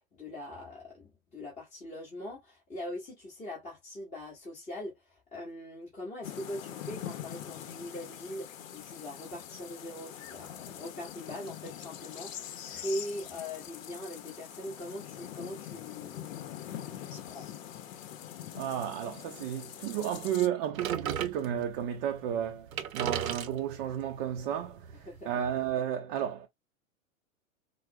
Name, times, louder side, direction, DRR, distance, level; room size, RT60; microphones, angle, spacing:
voice 1, 0.1-16.2 16.7-17.5 24.9-25.3, left 1 dB, 15° left, 1.4 m, -42 dB
sound 1, 6.2-20.5, left 10 dB, 70° left, 0.7 m, -43 dB
voice 2, 18.5-22.7 22.9-24.8 25.3-26.5, right 10 dB, 40° right, 0.5 m, -32 dB
sound 2, 20.8-21.8 22.4-22.5 22.7-25.7, right 9 dB, 80° right, 0.7 m, -37 dB
4.3 x 2.0 x 2.2 m
hypercardioid pair, 110°, 41 cm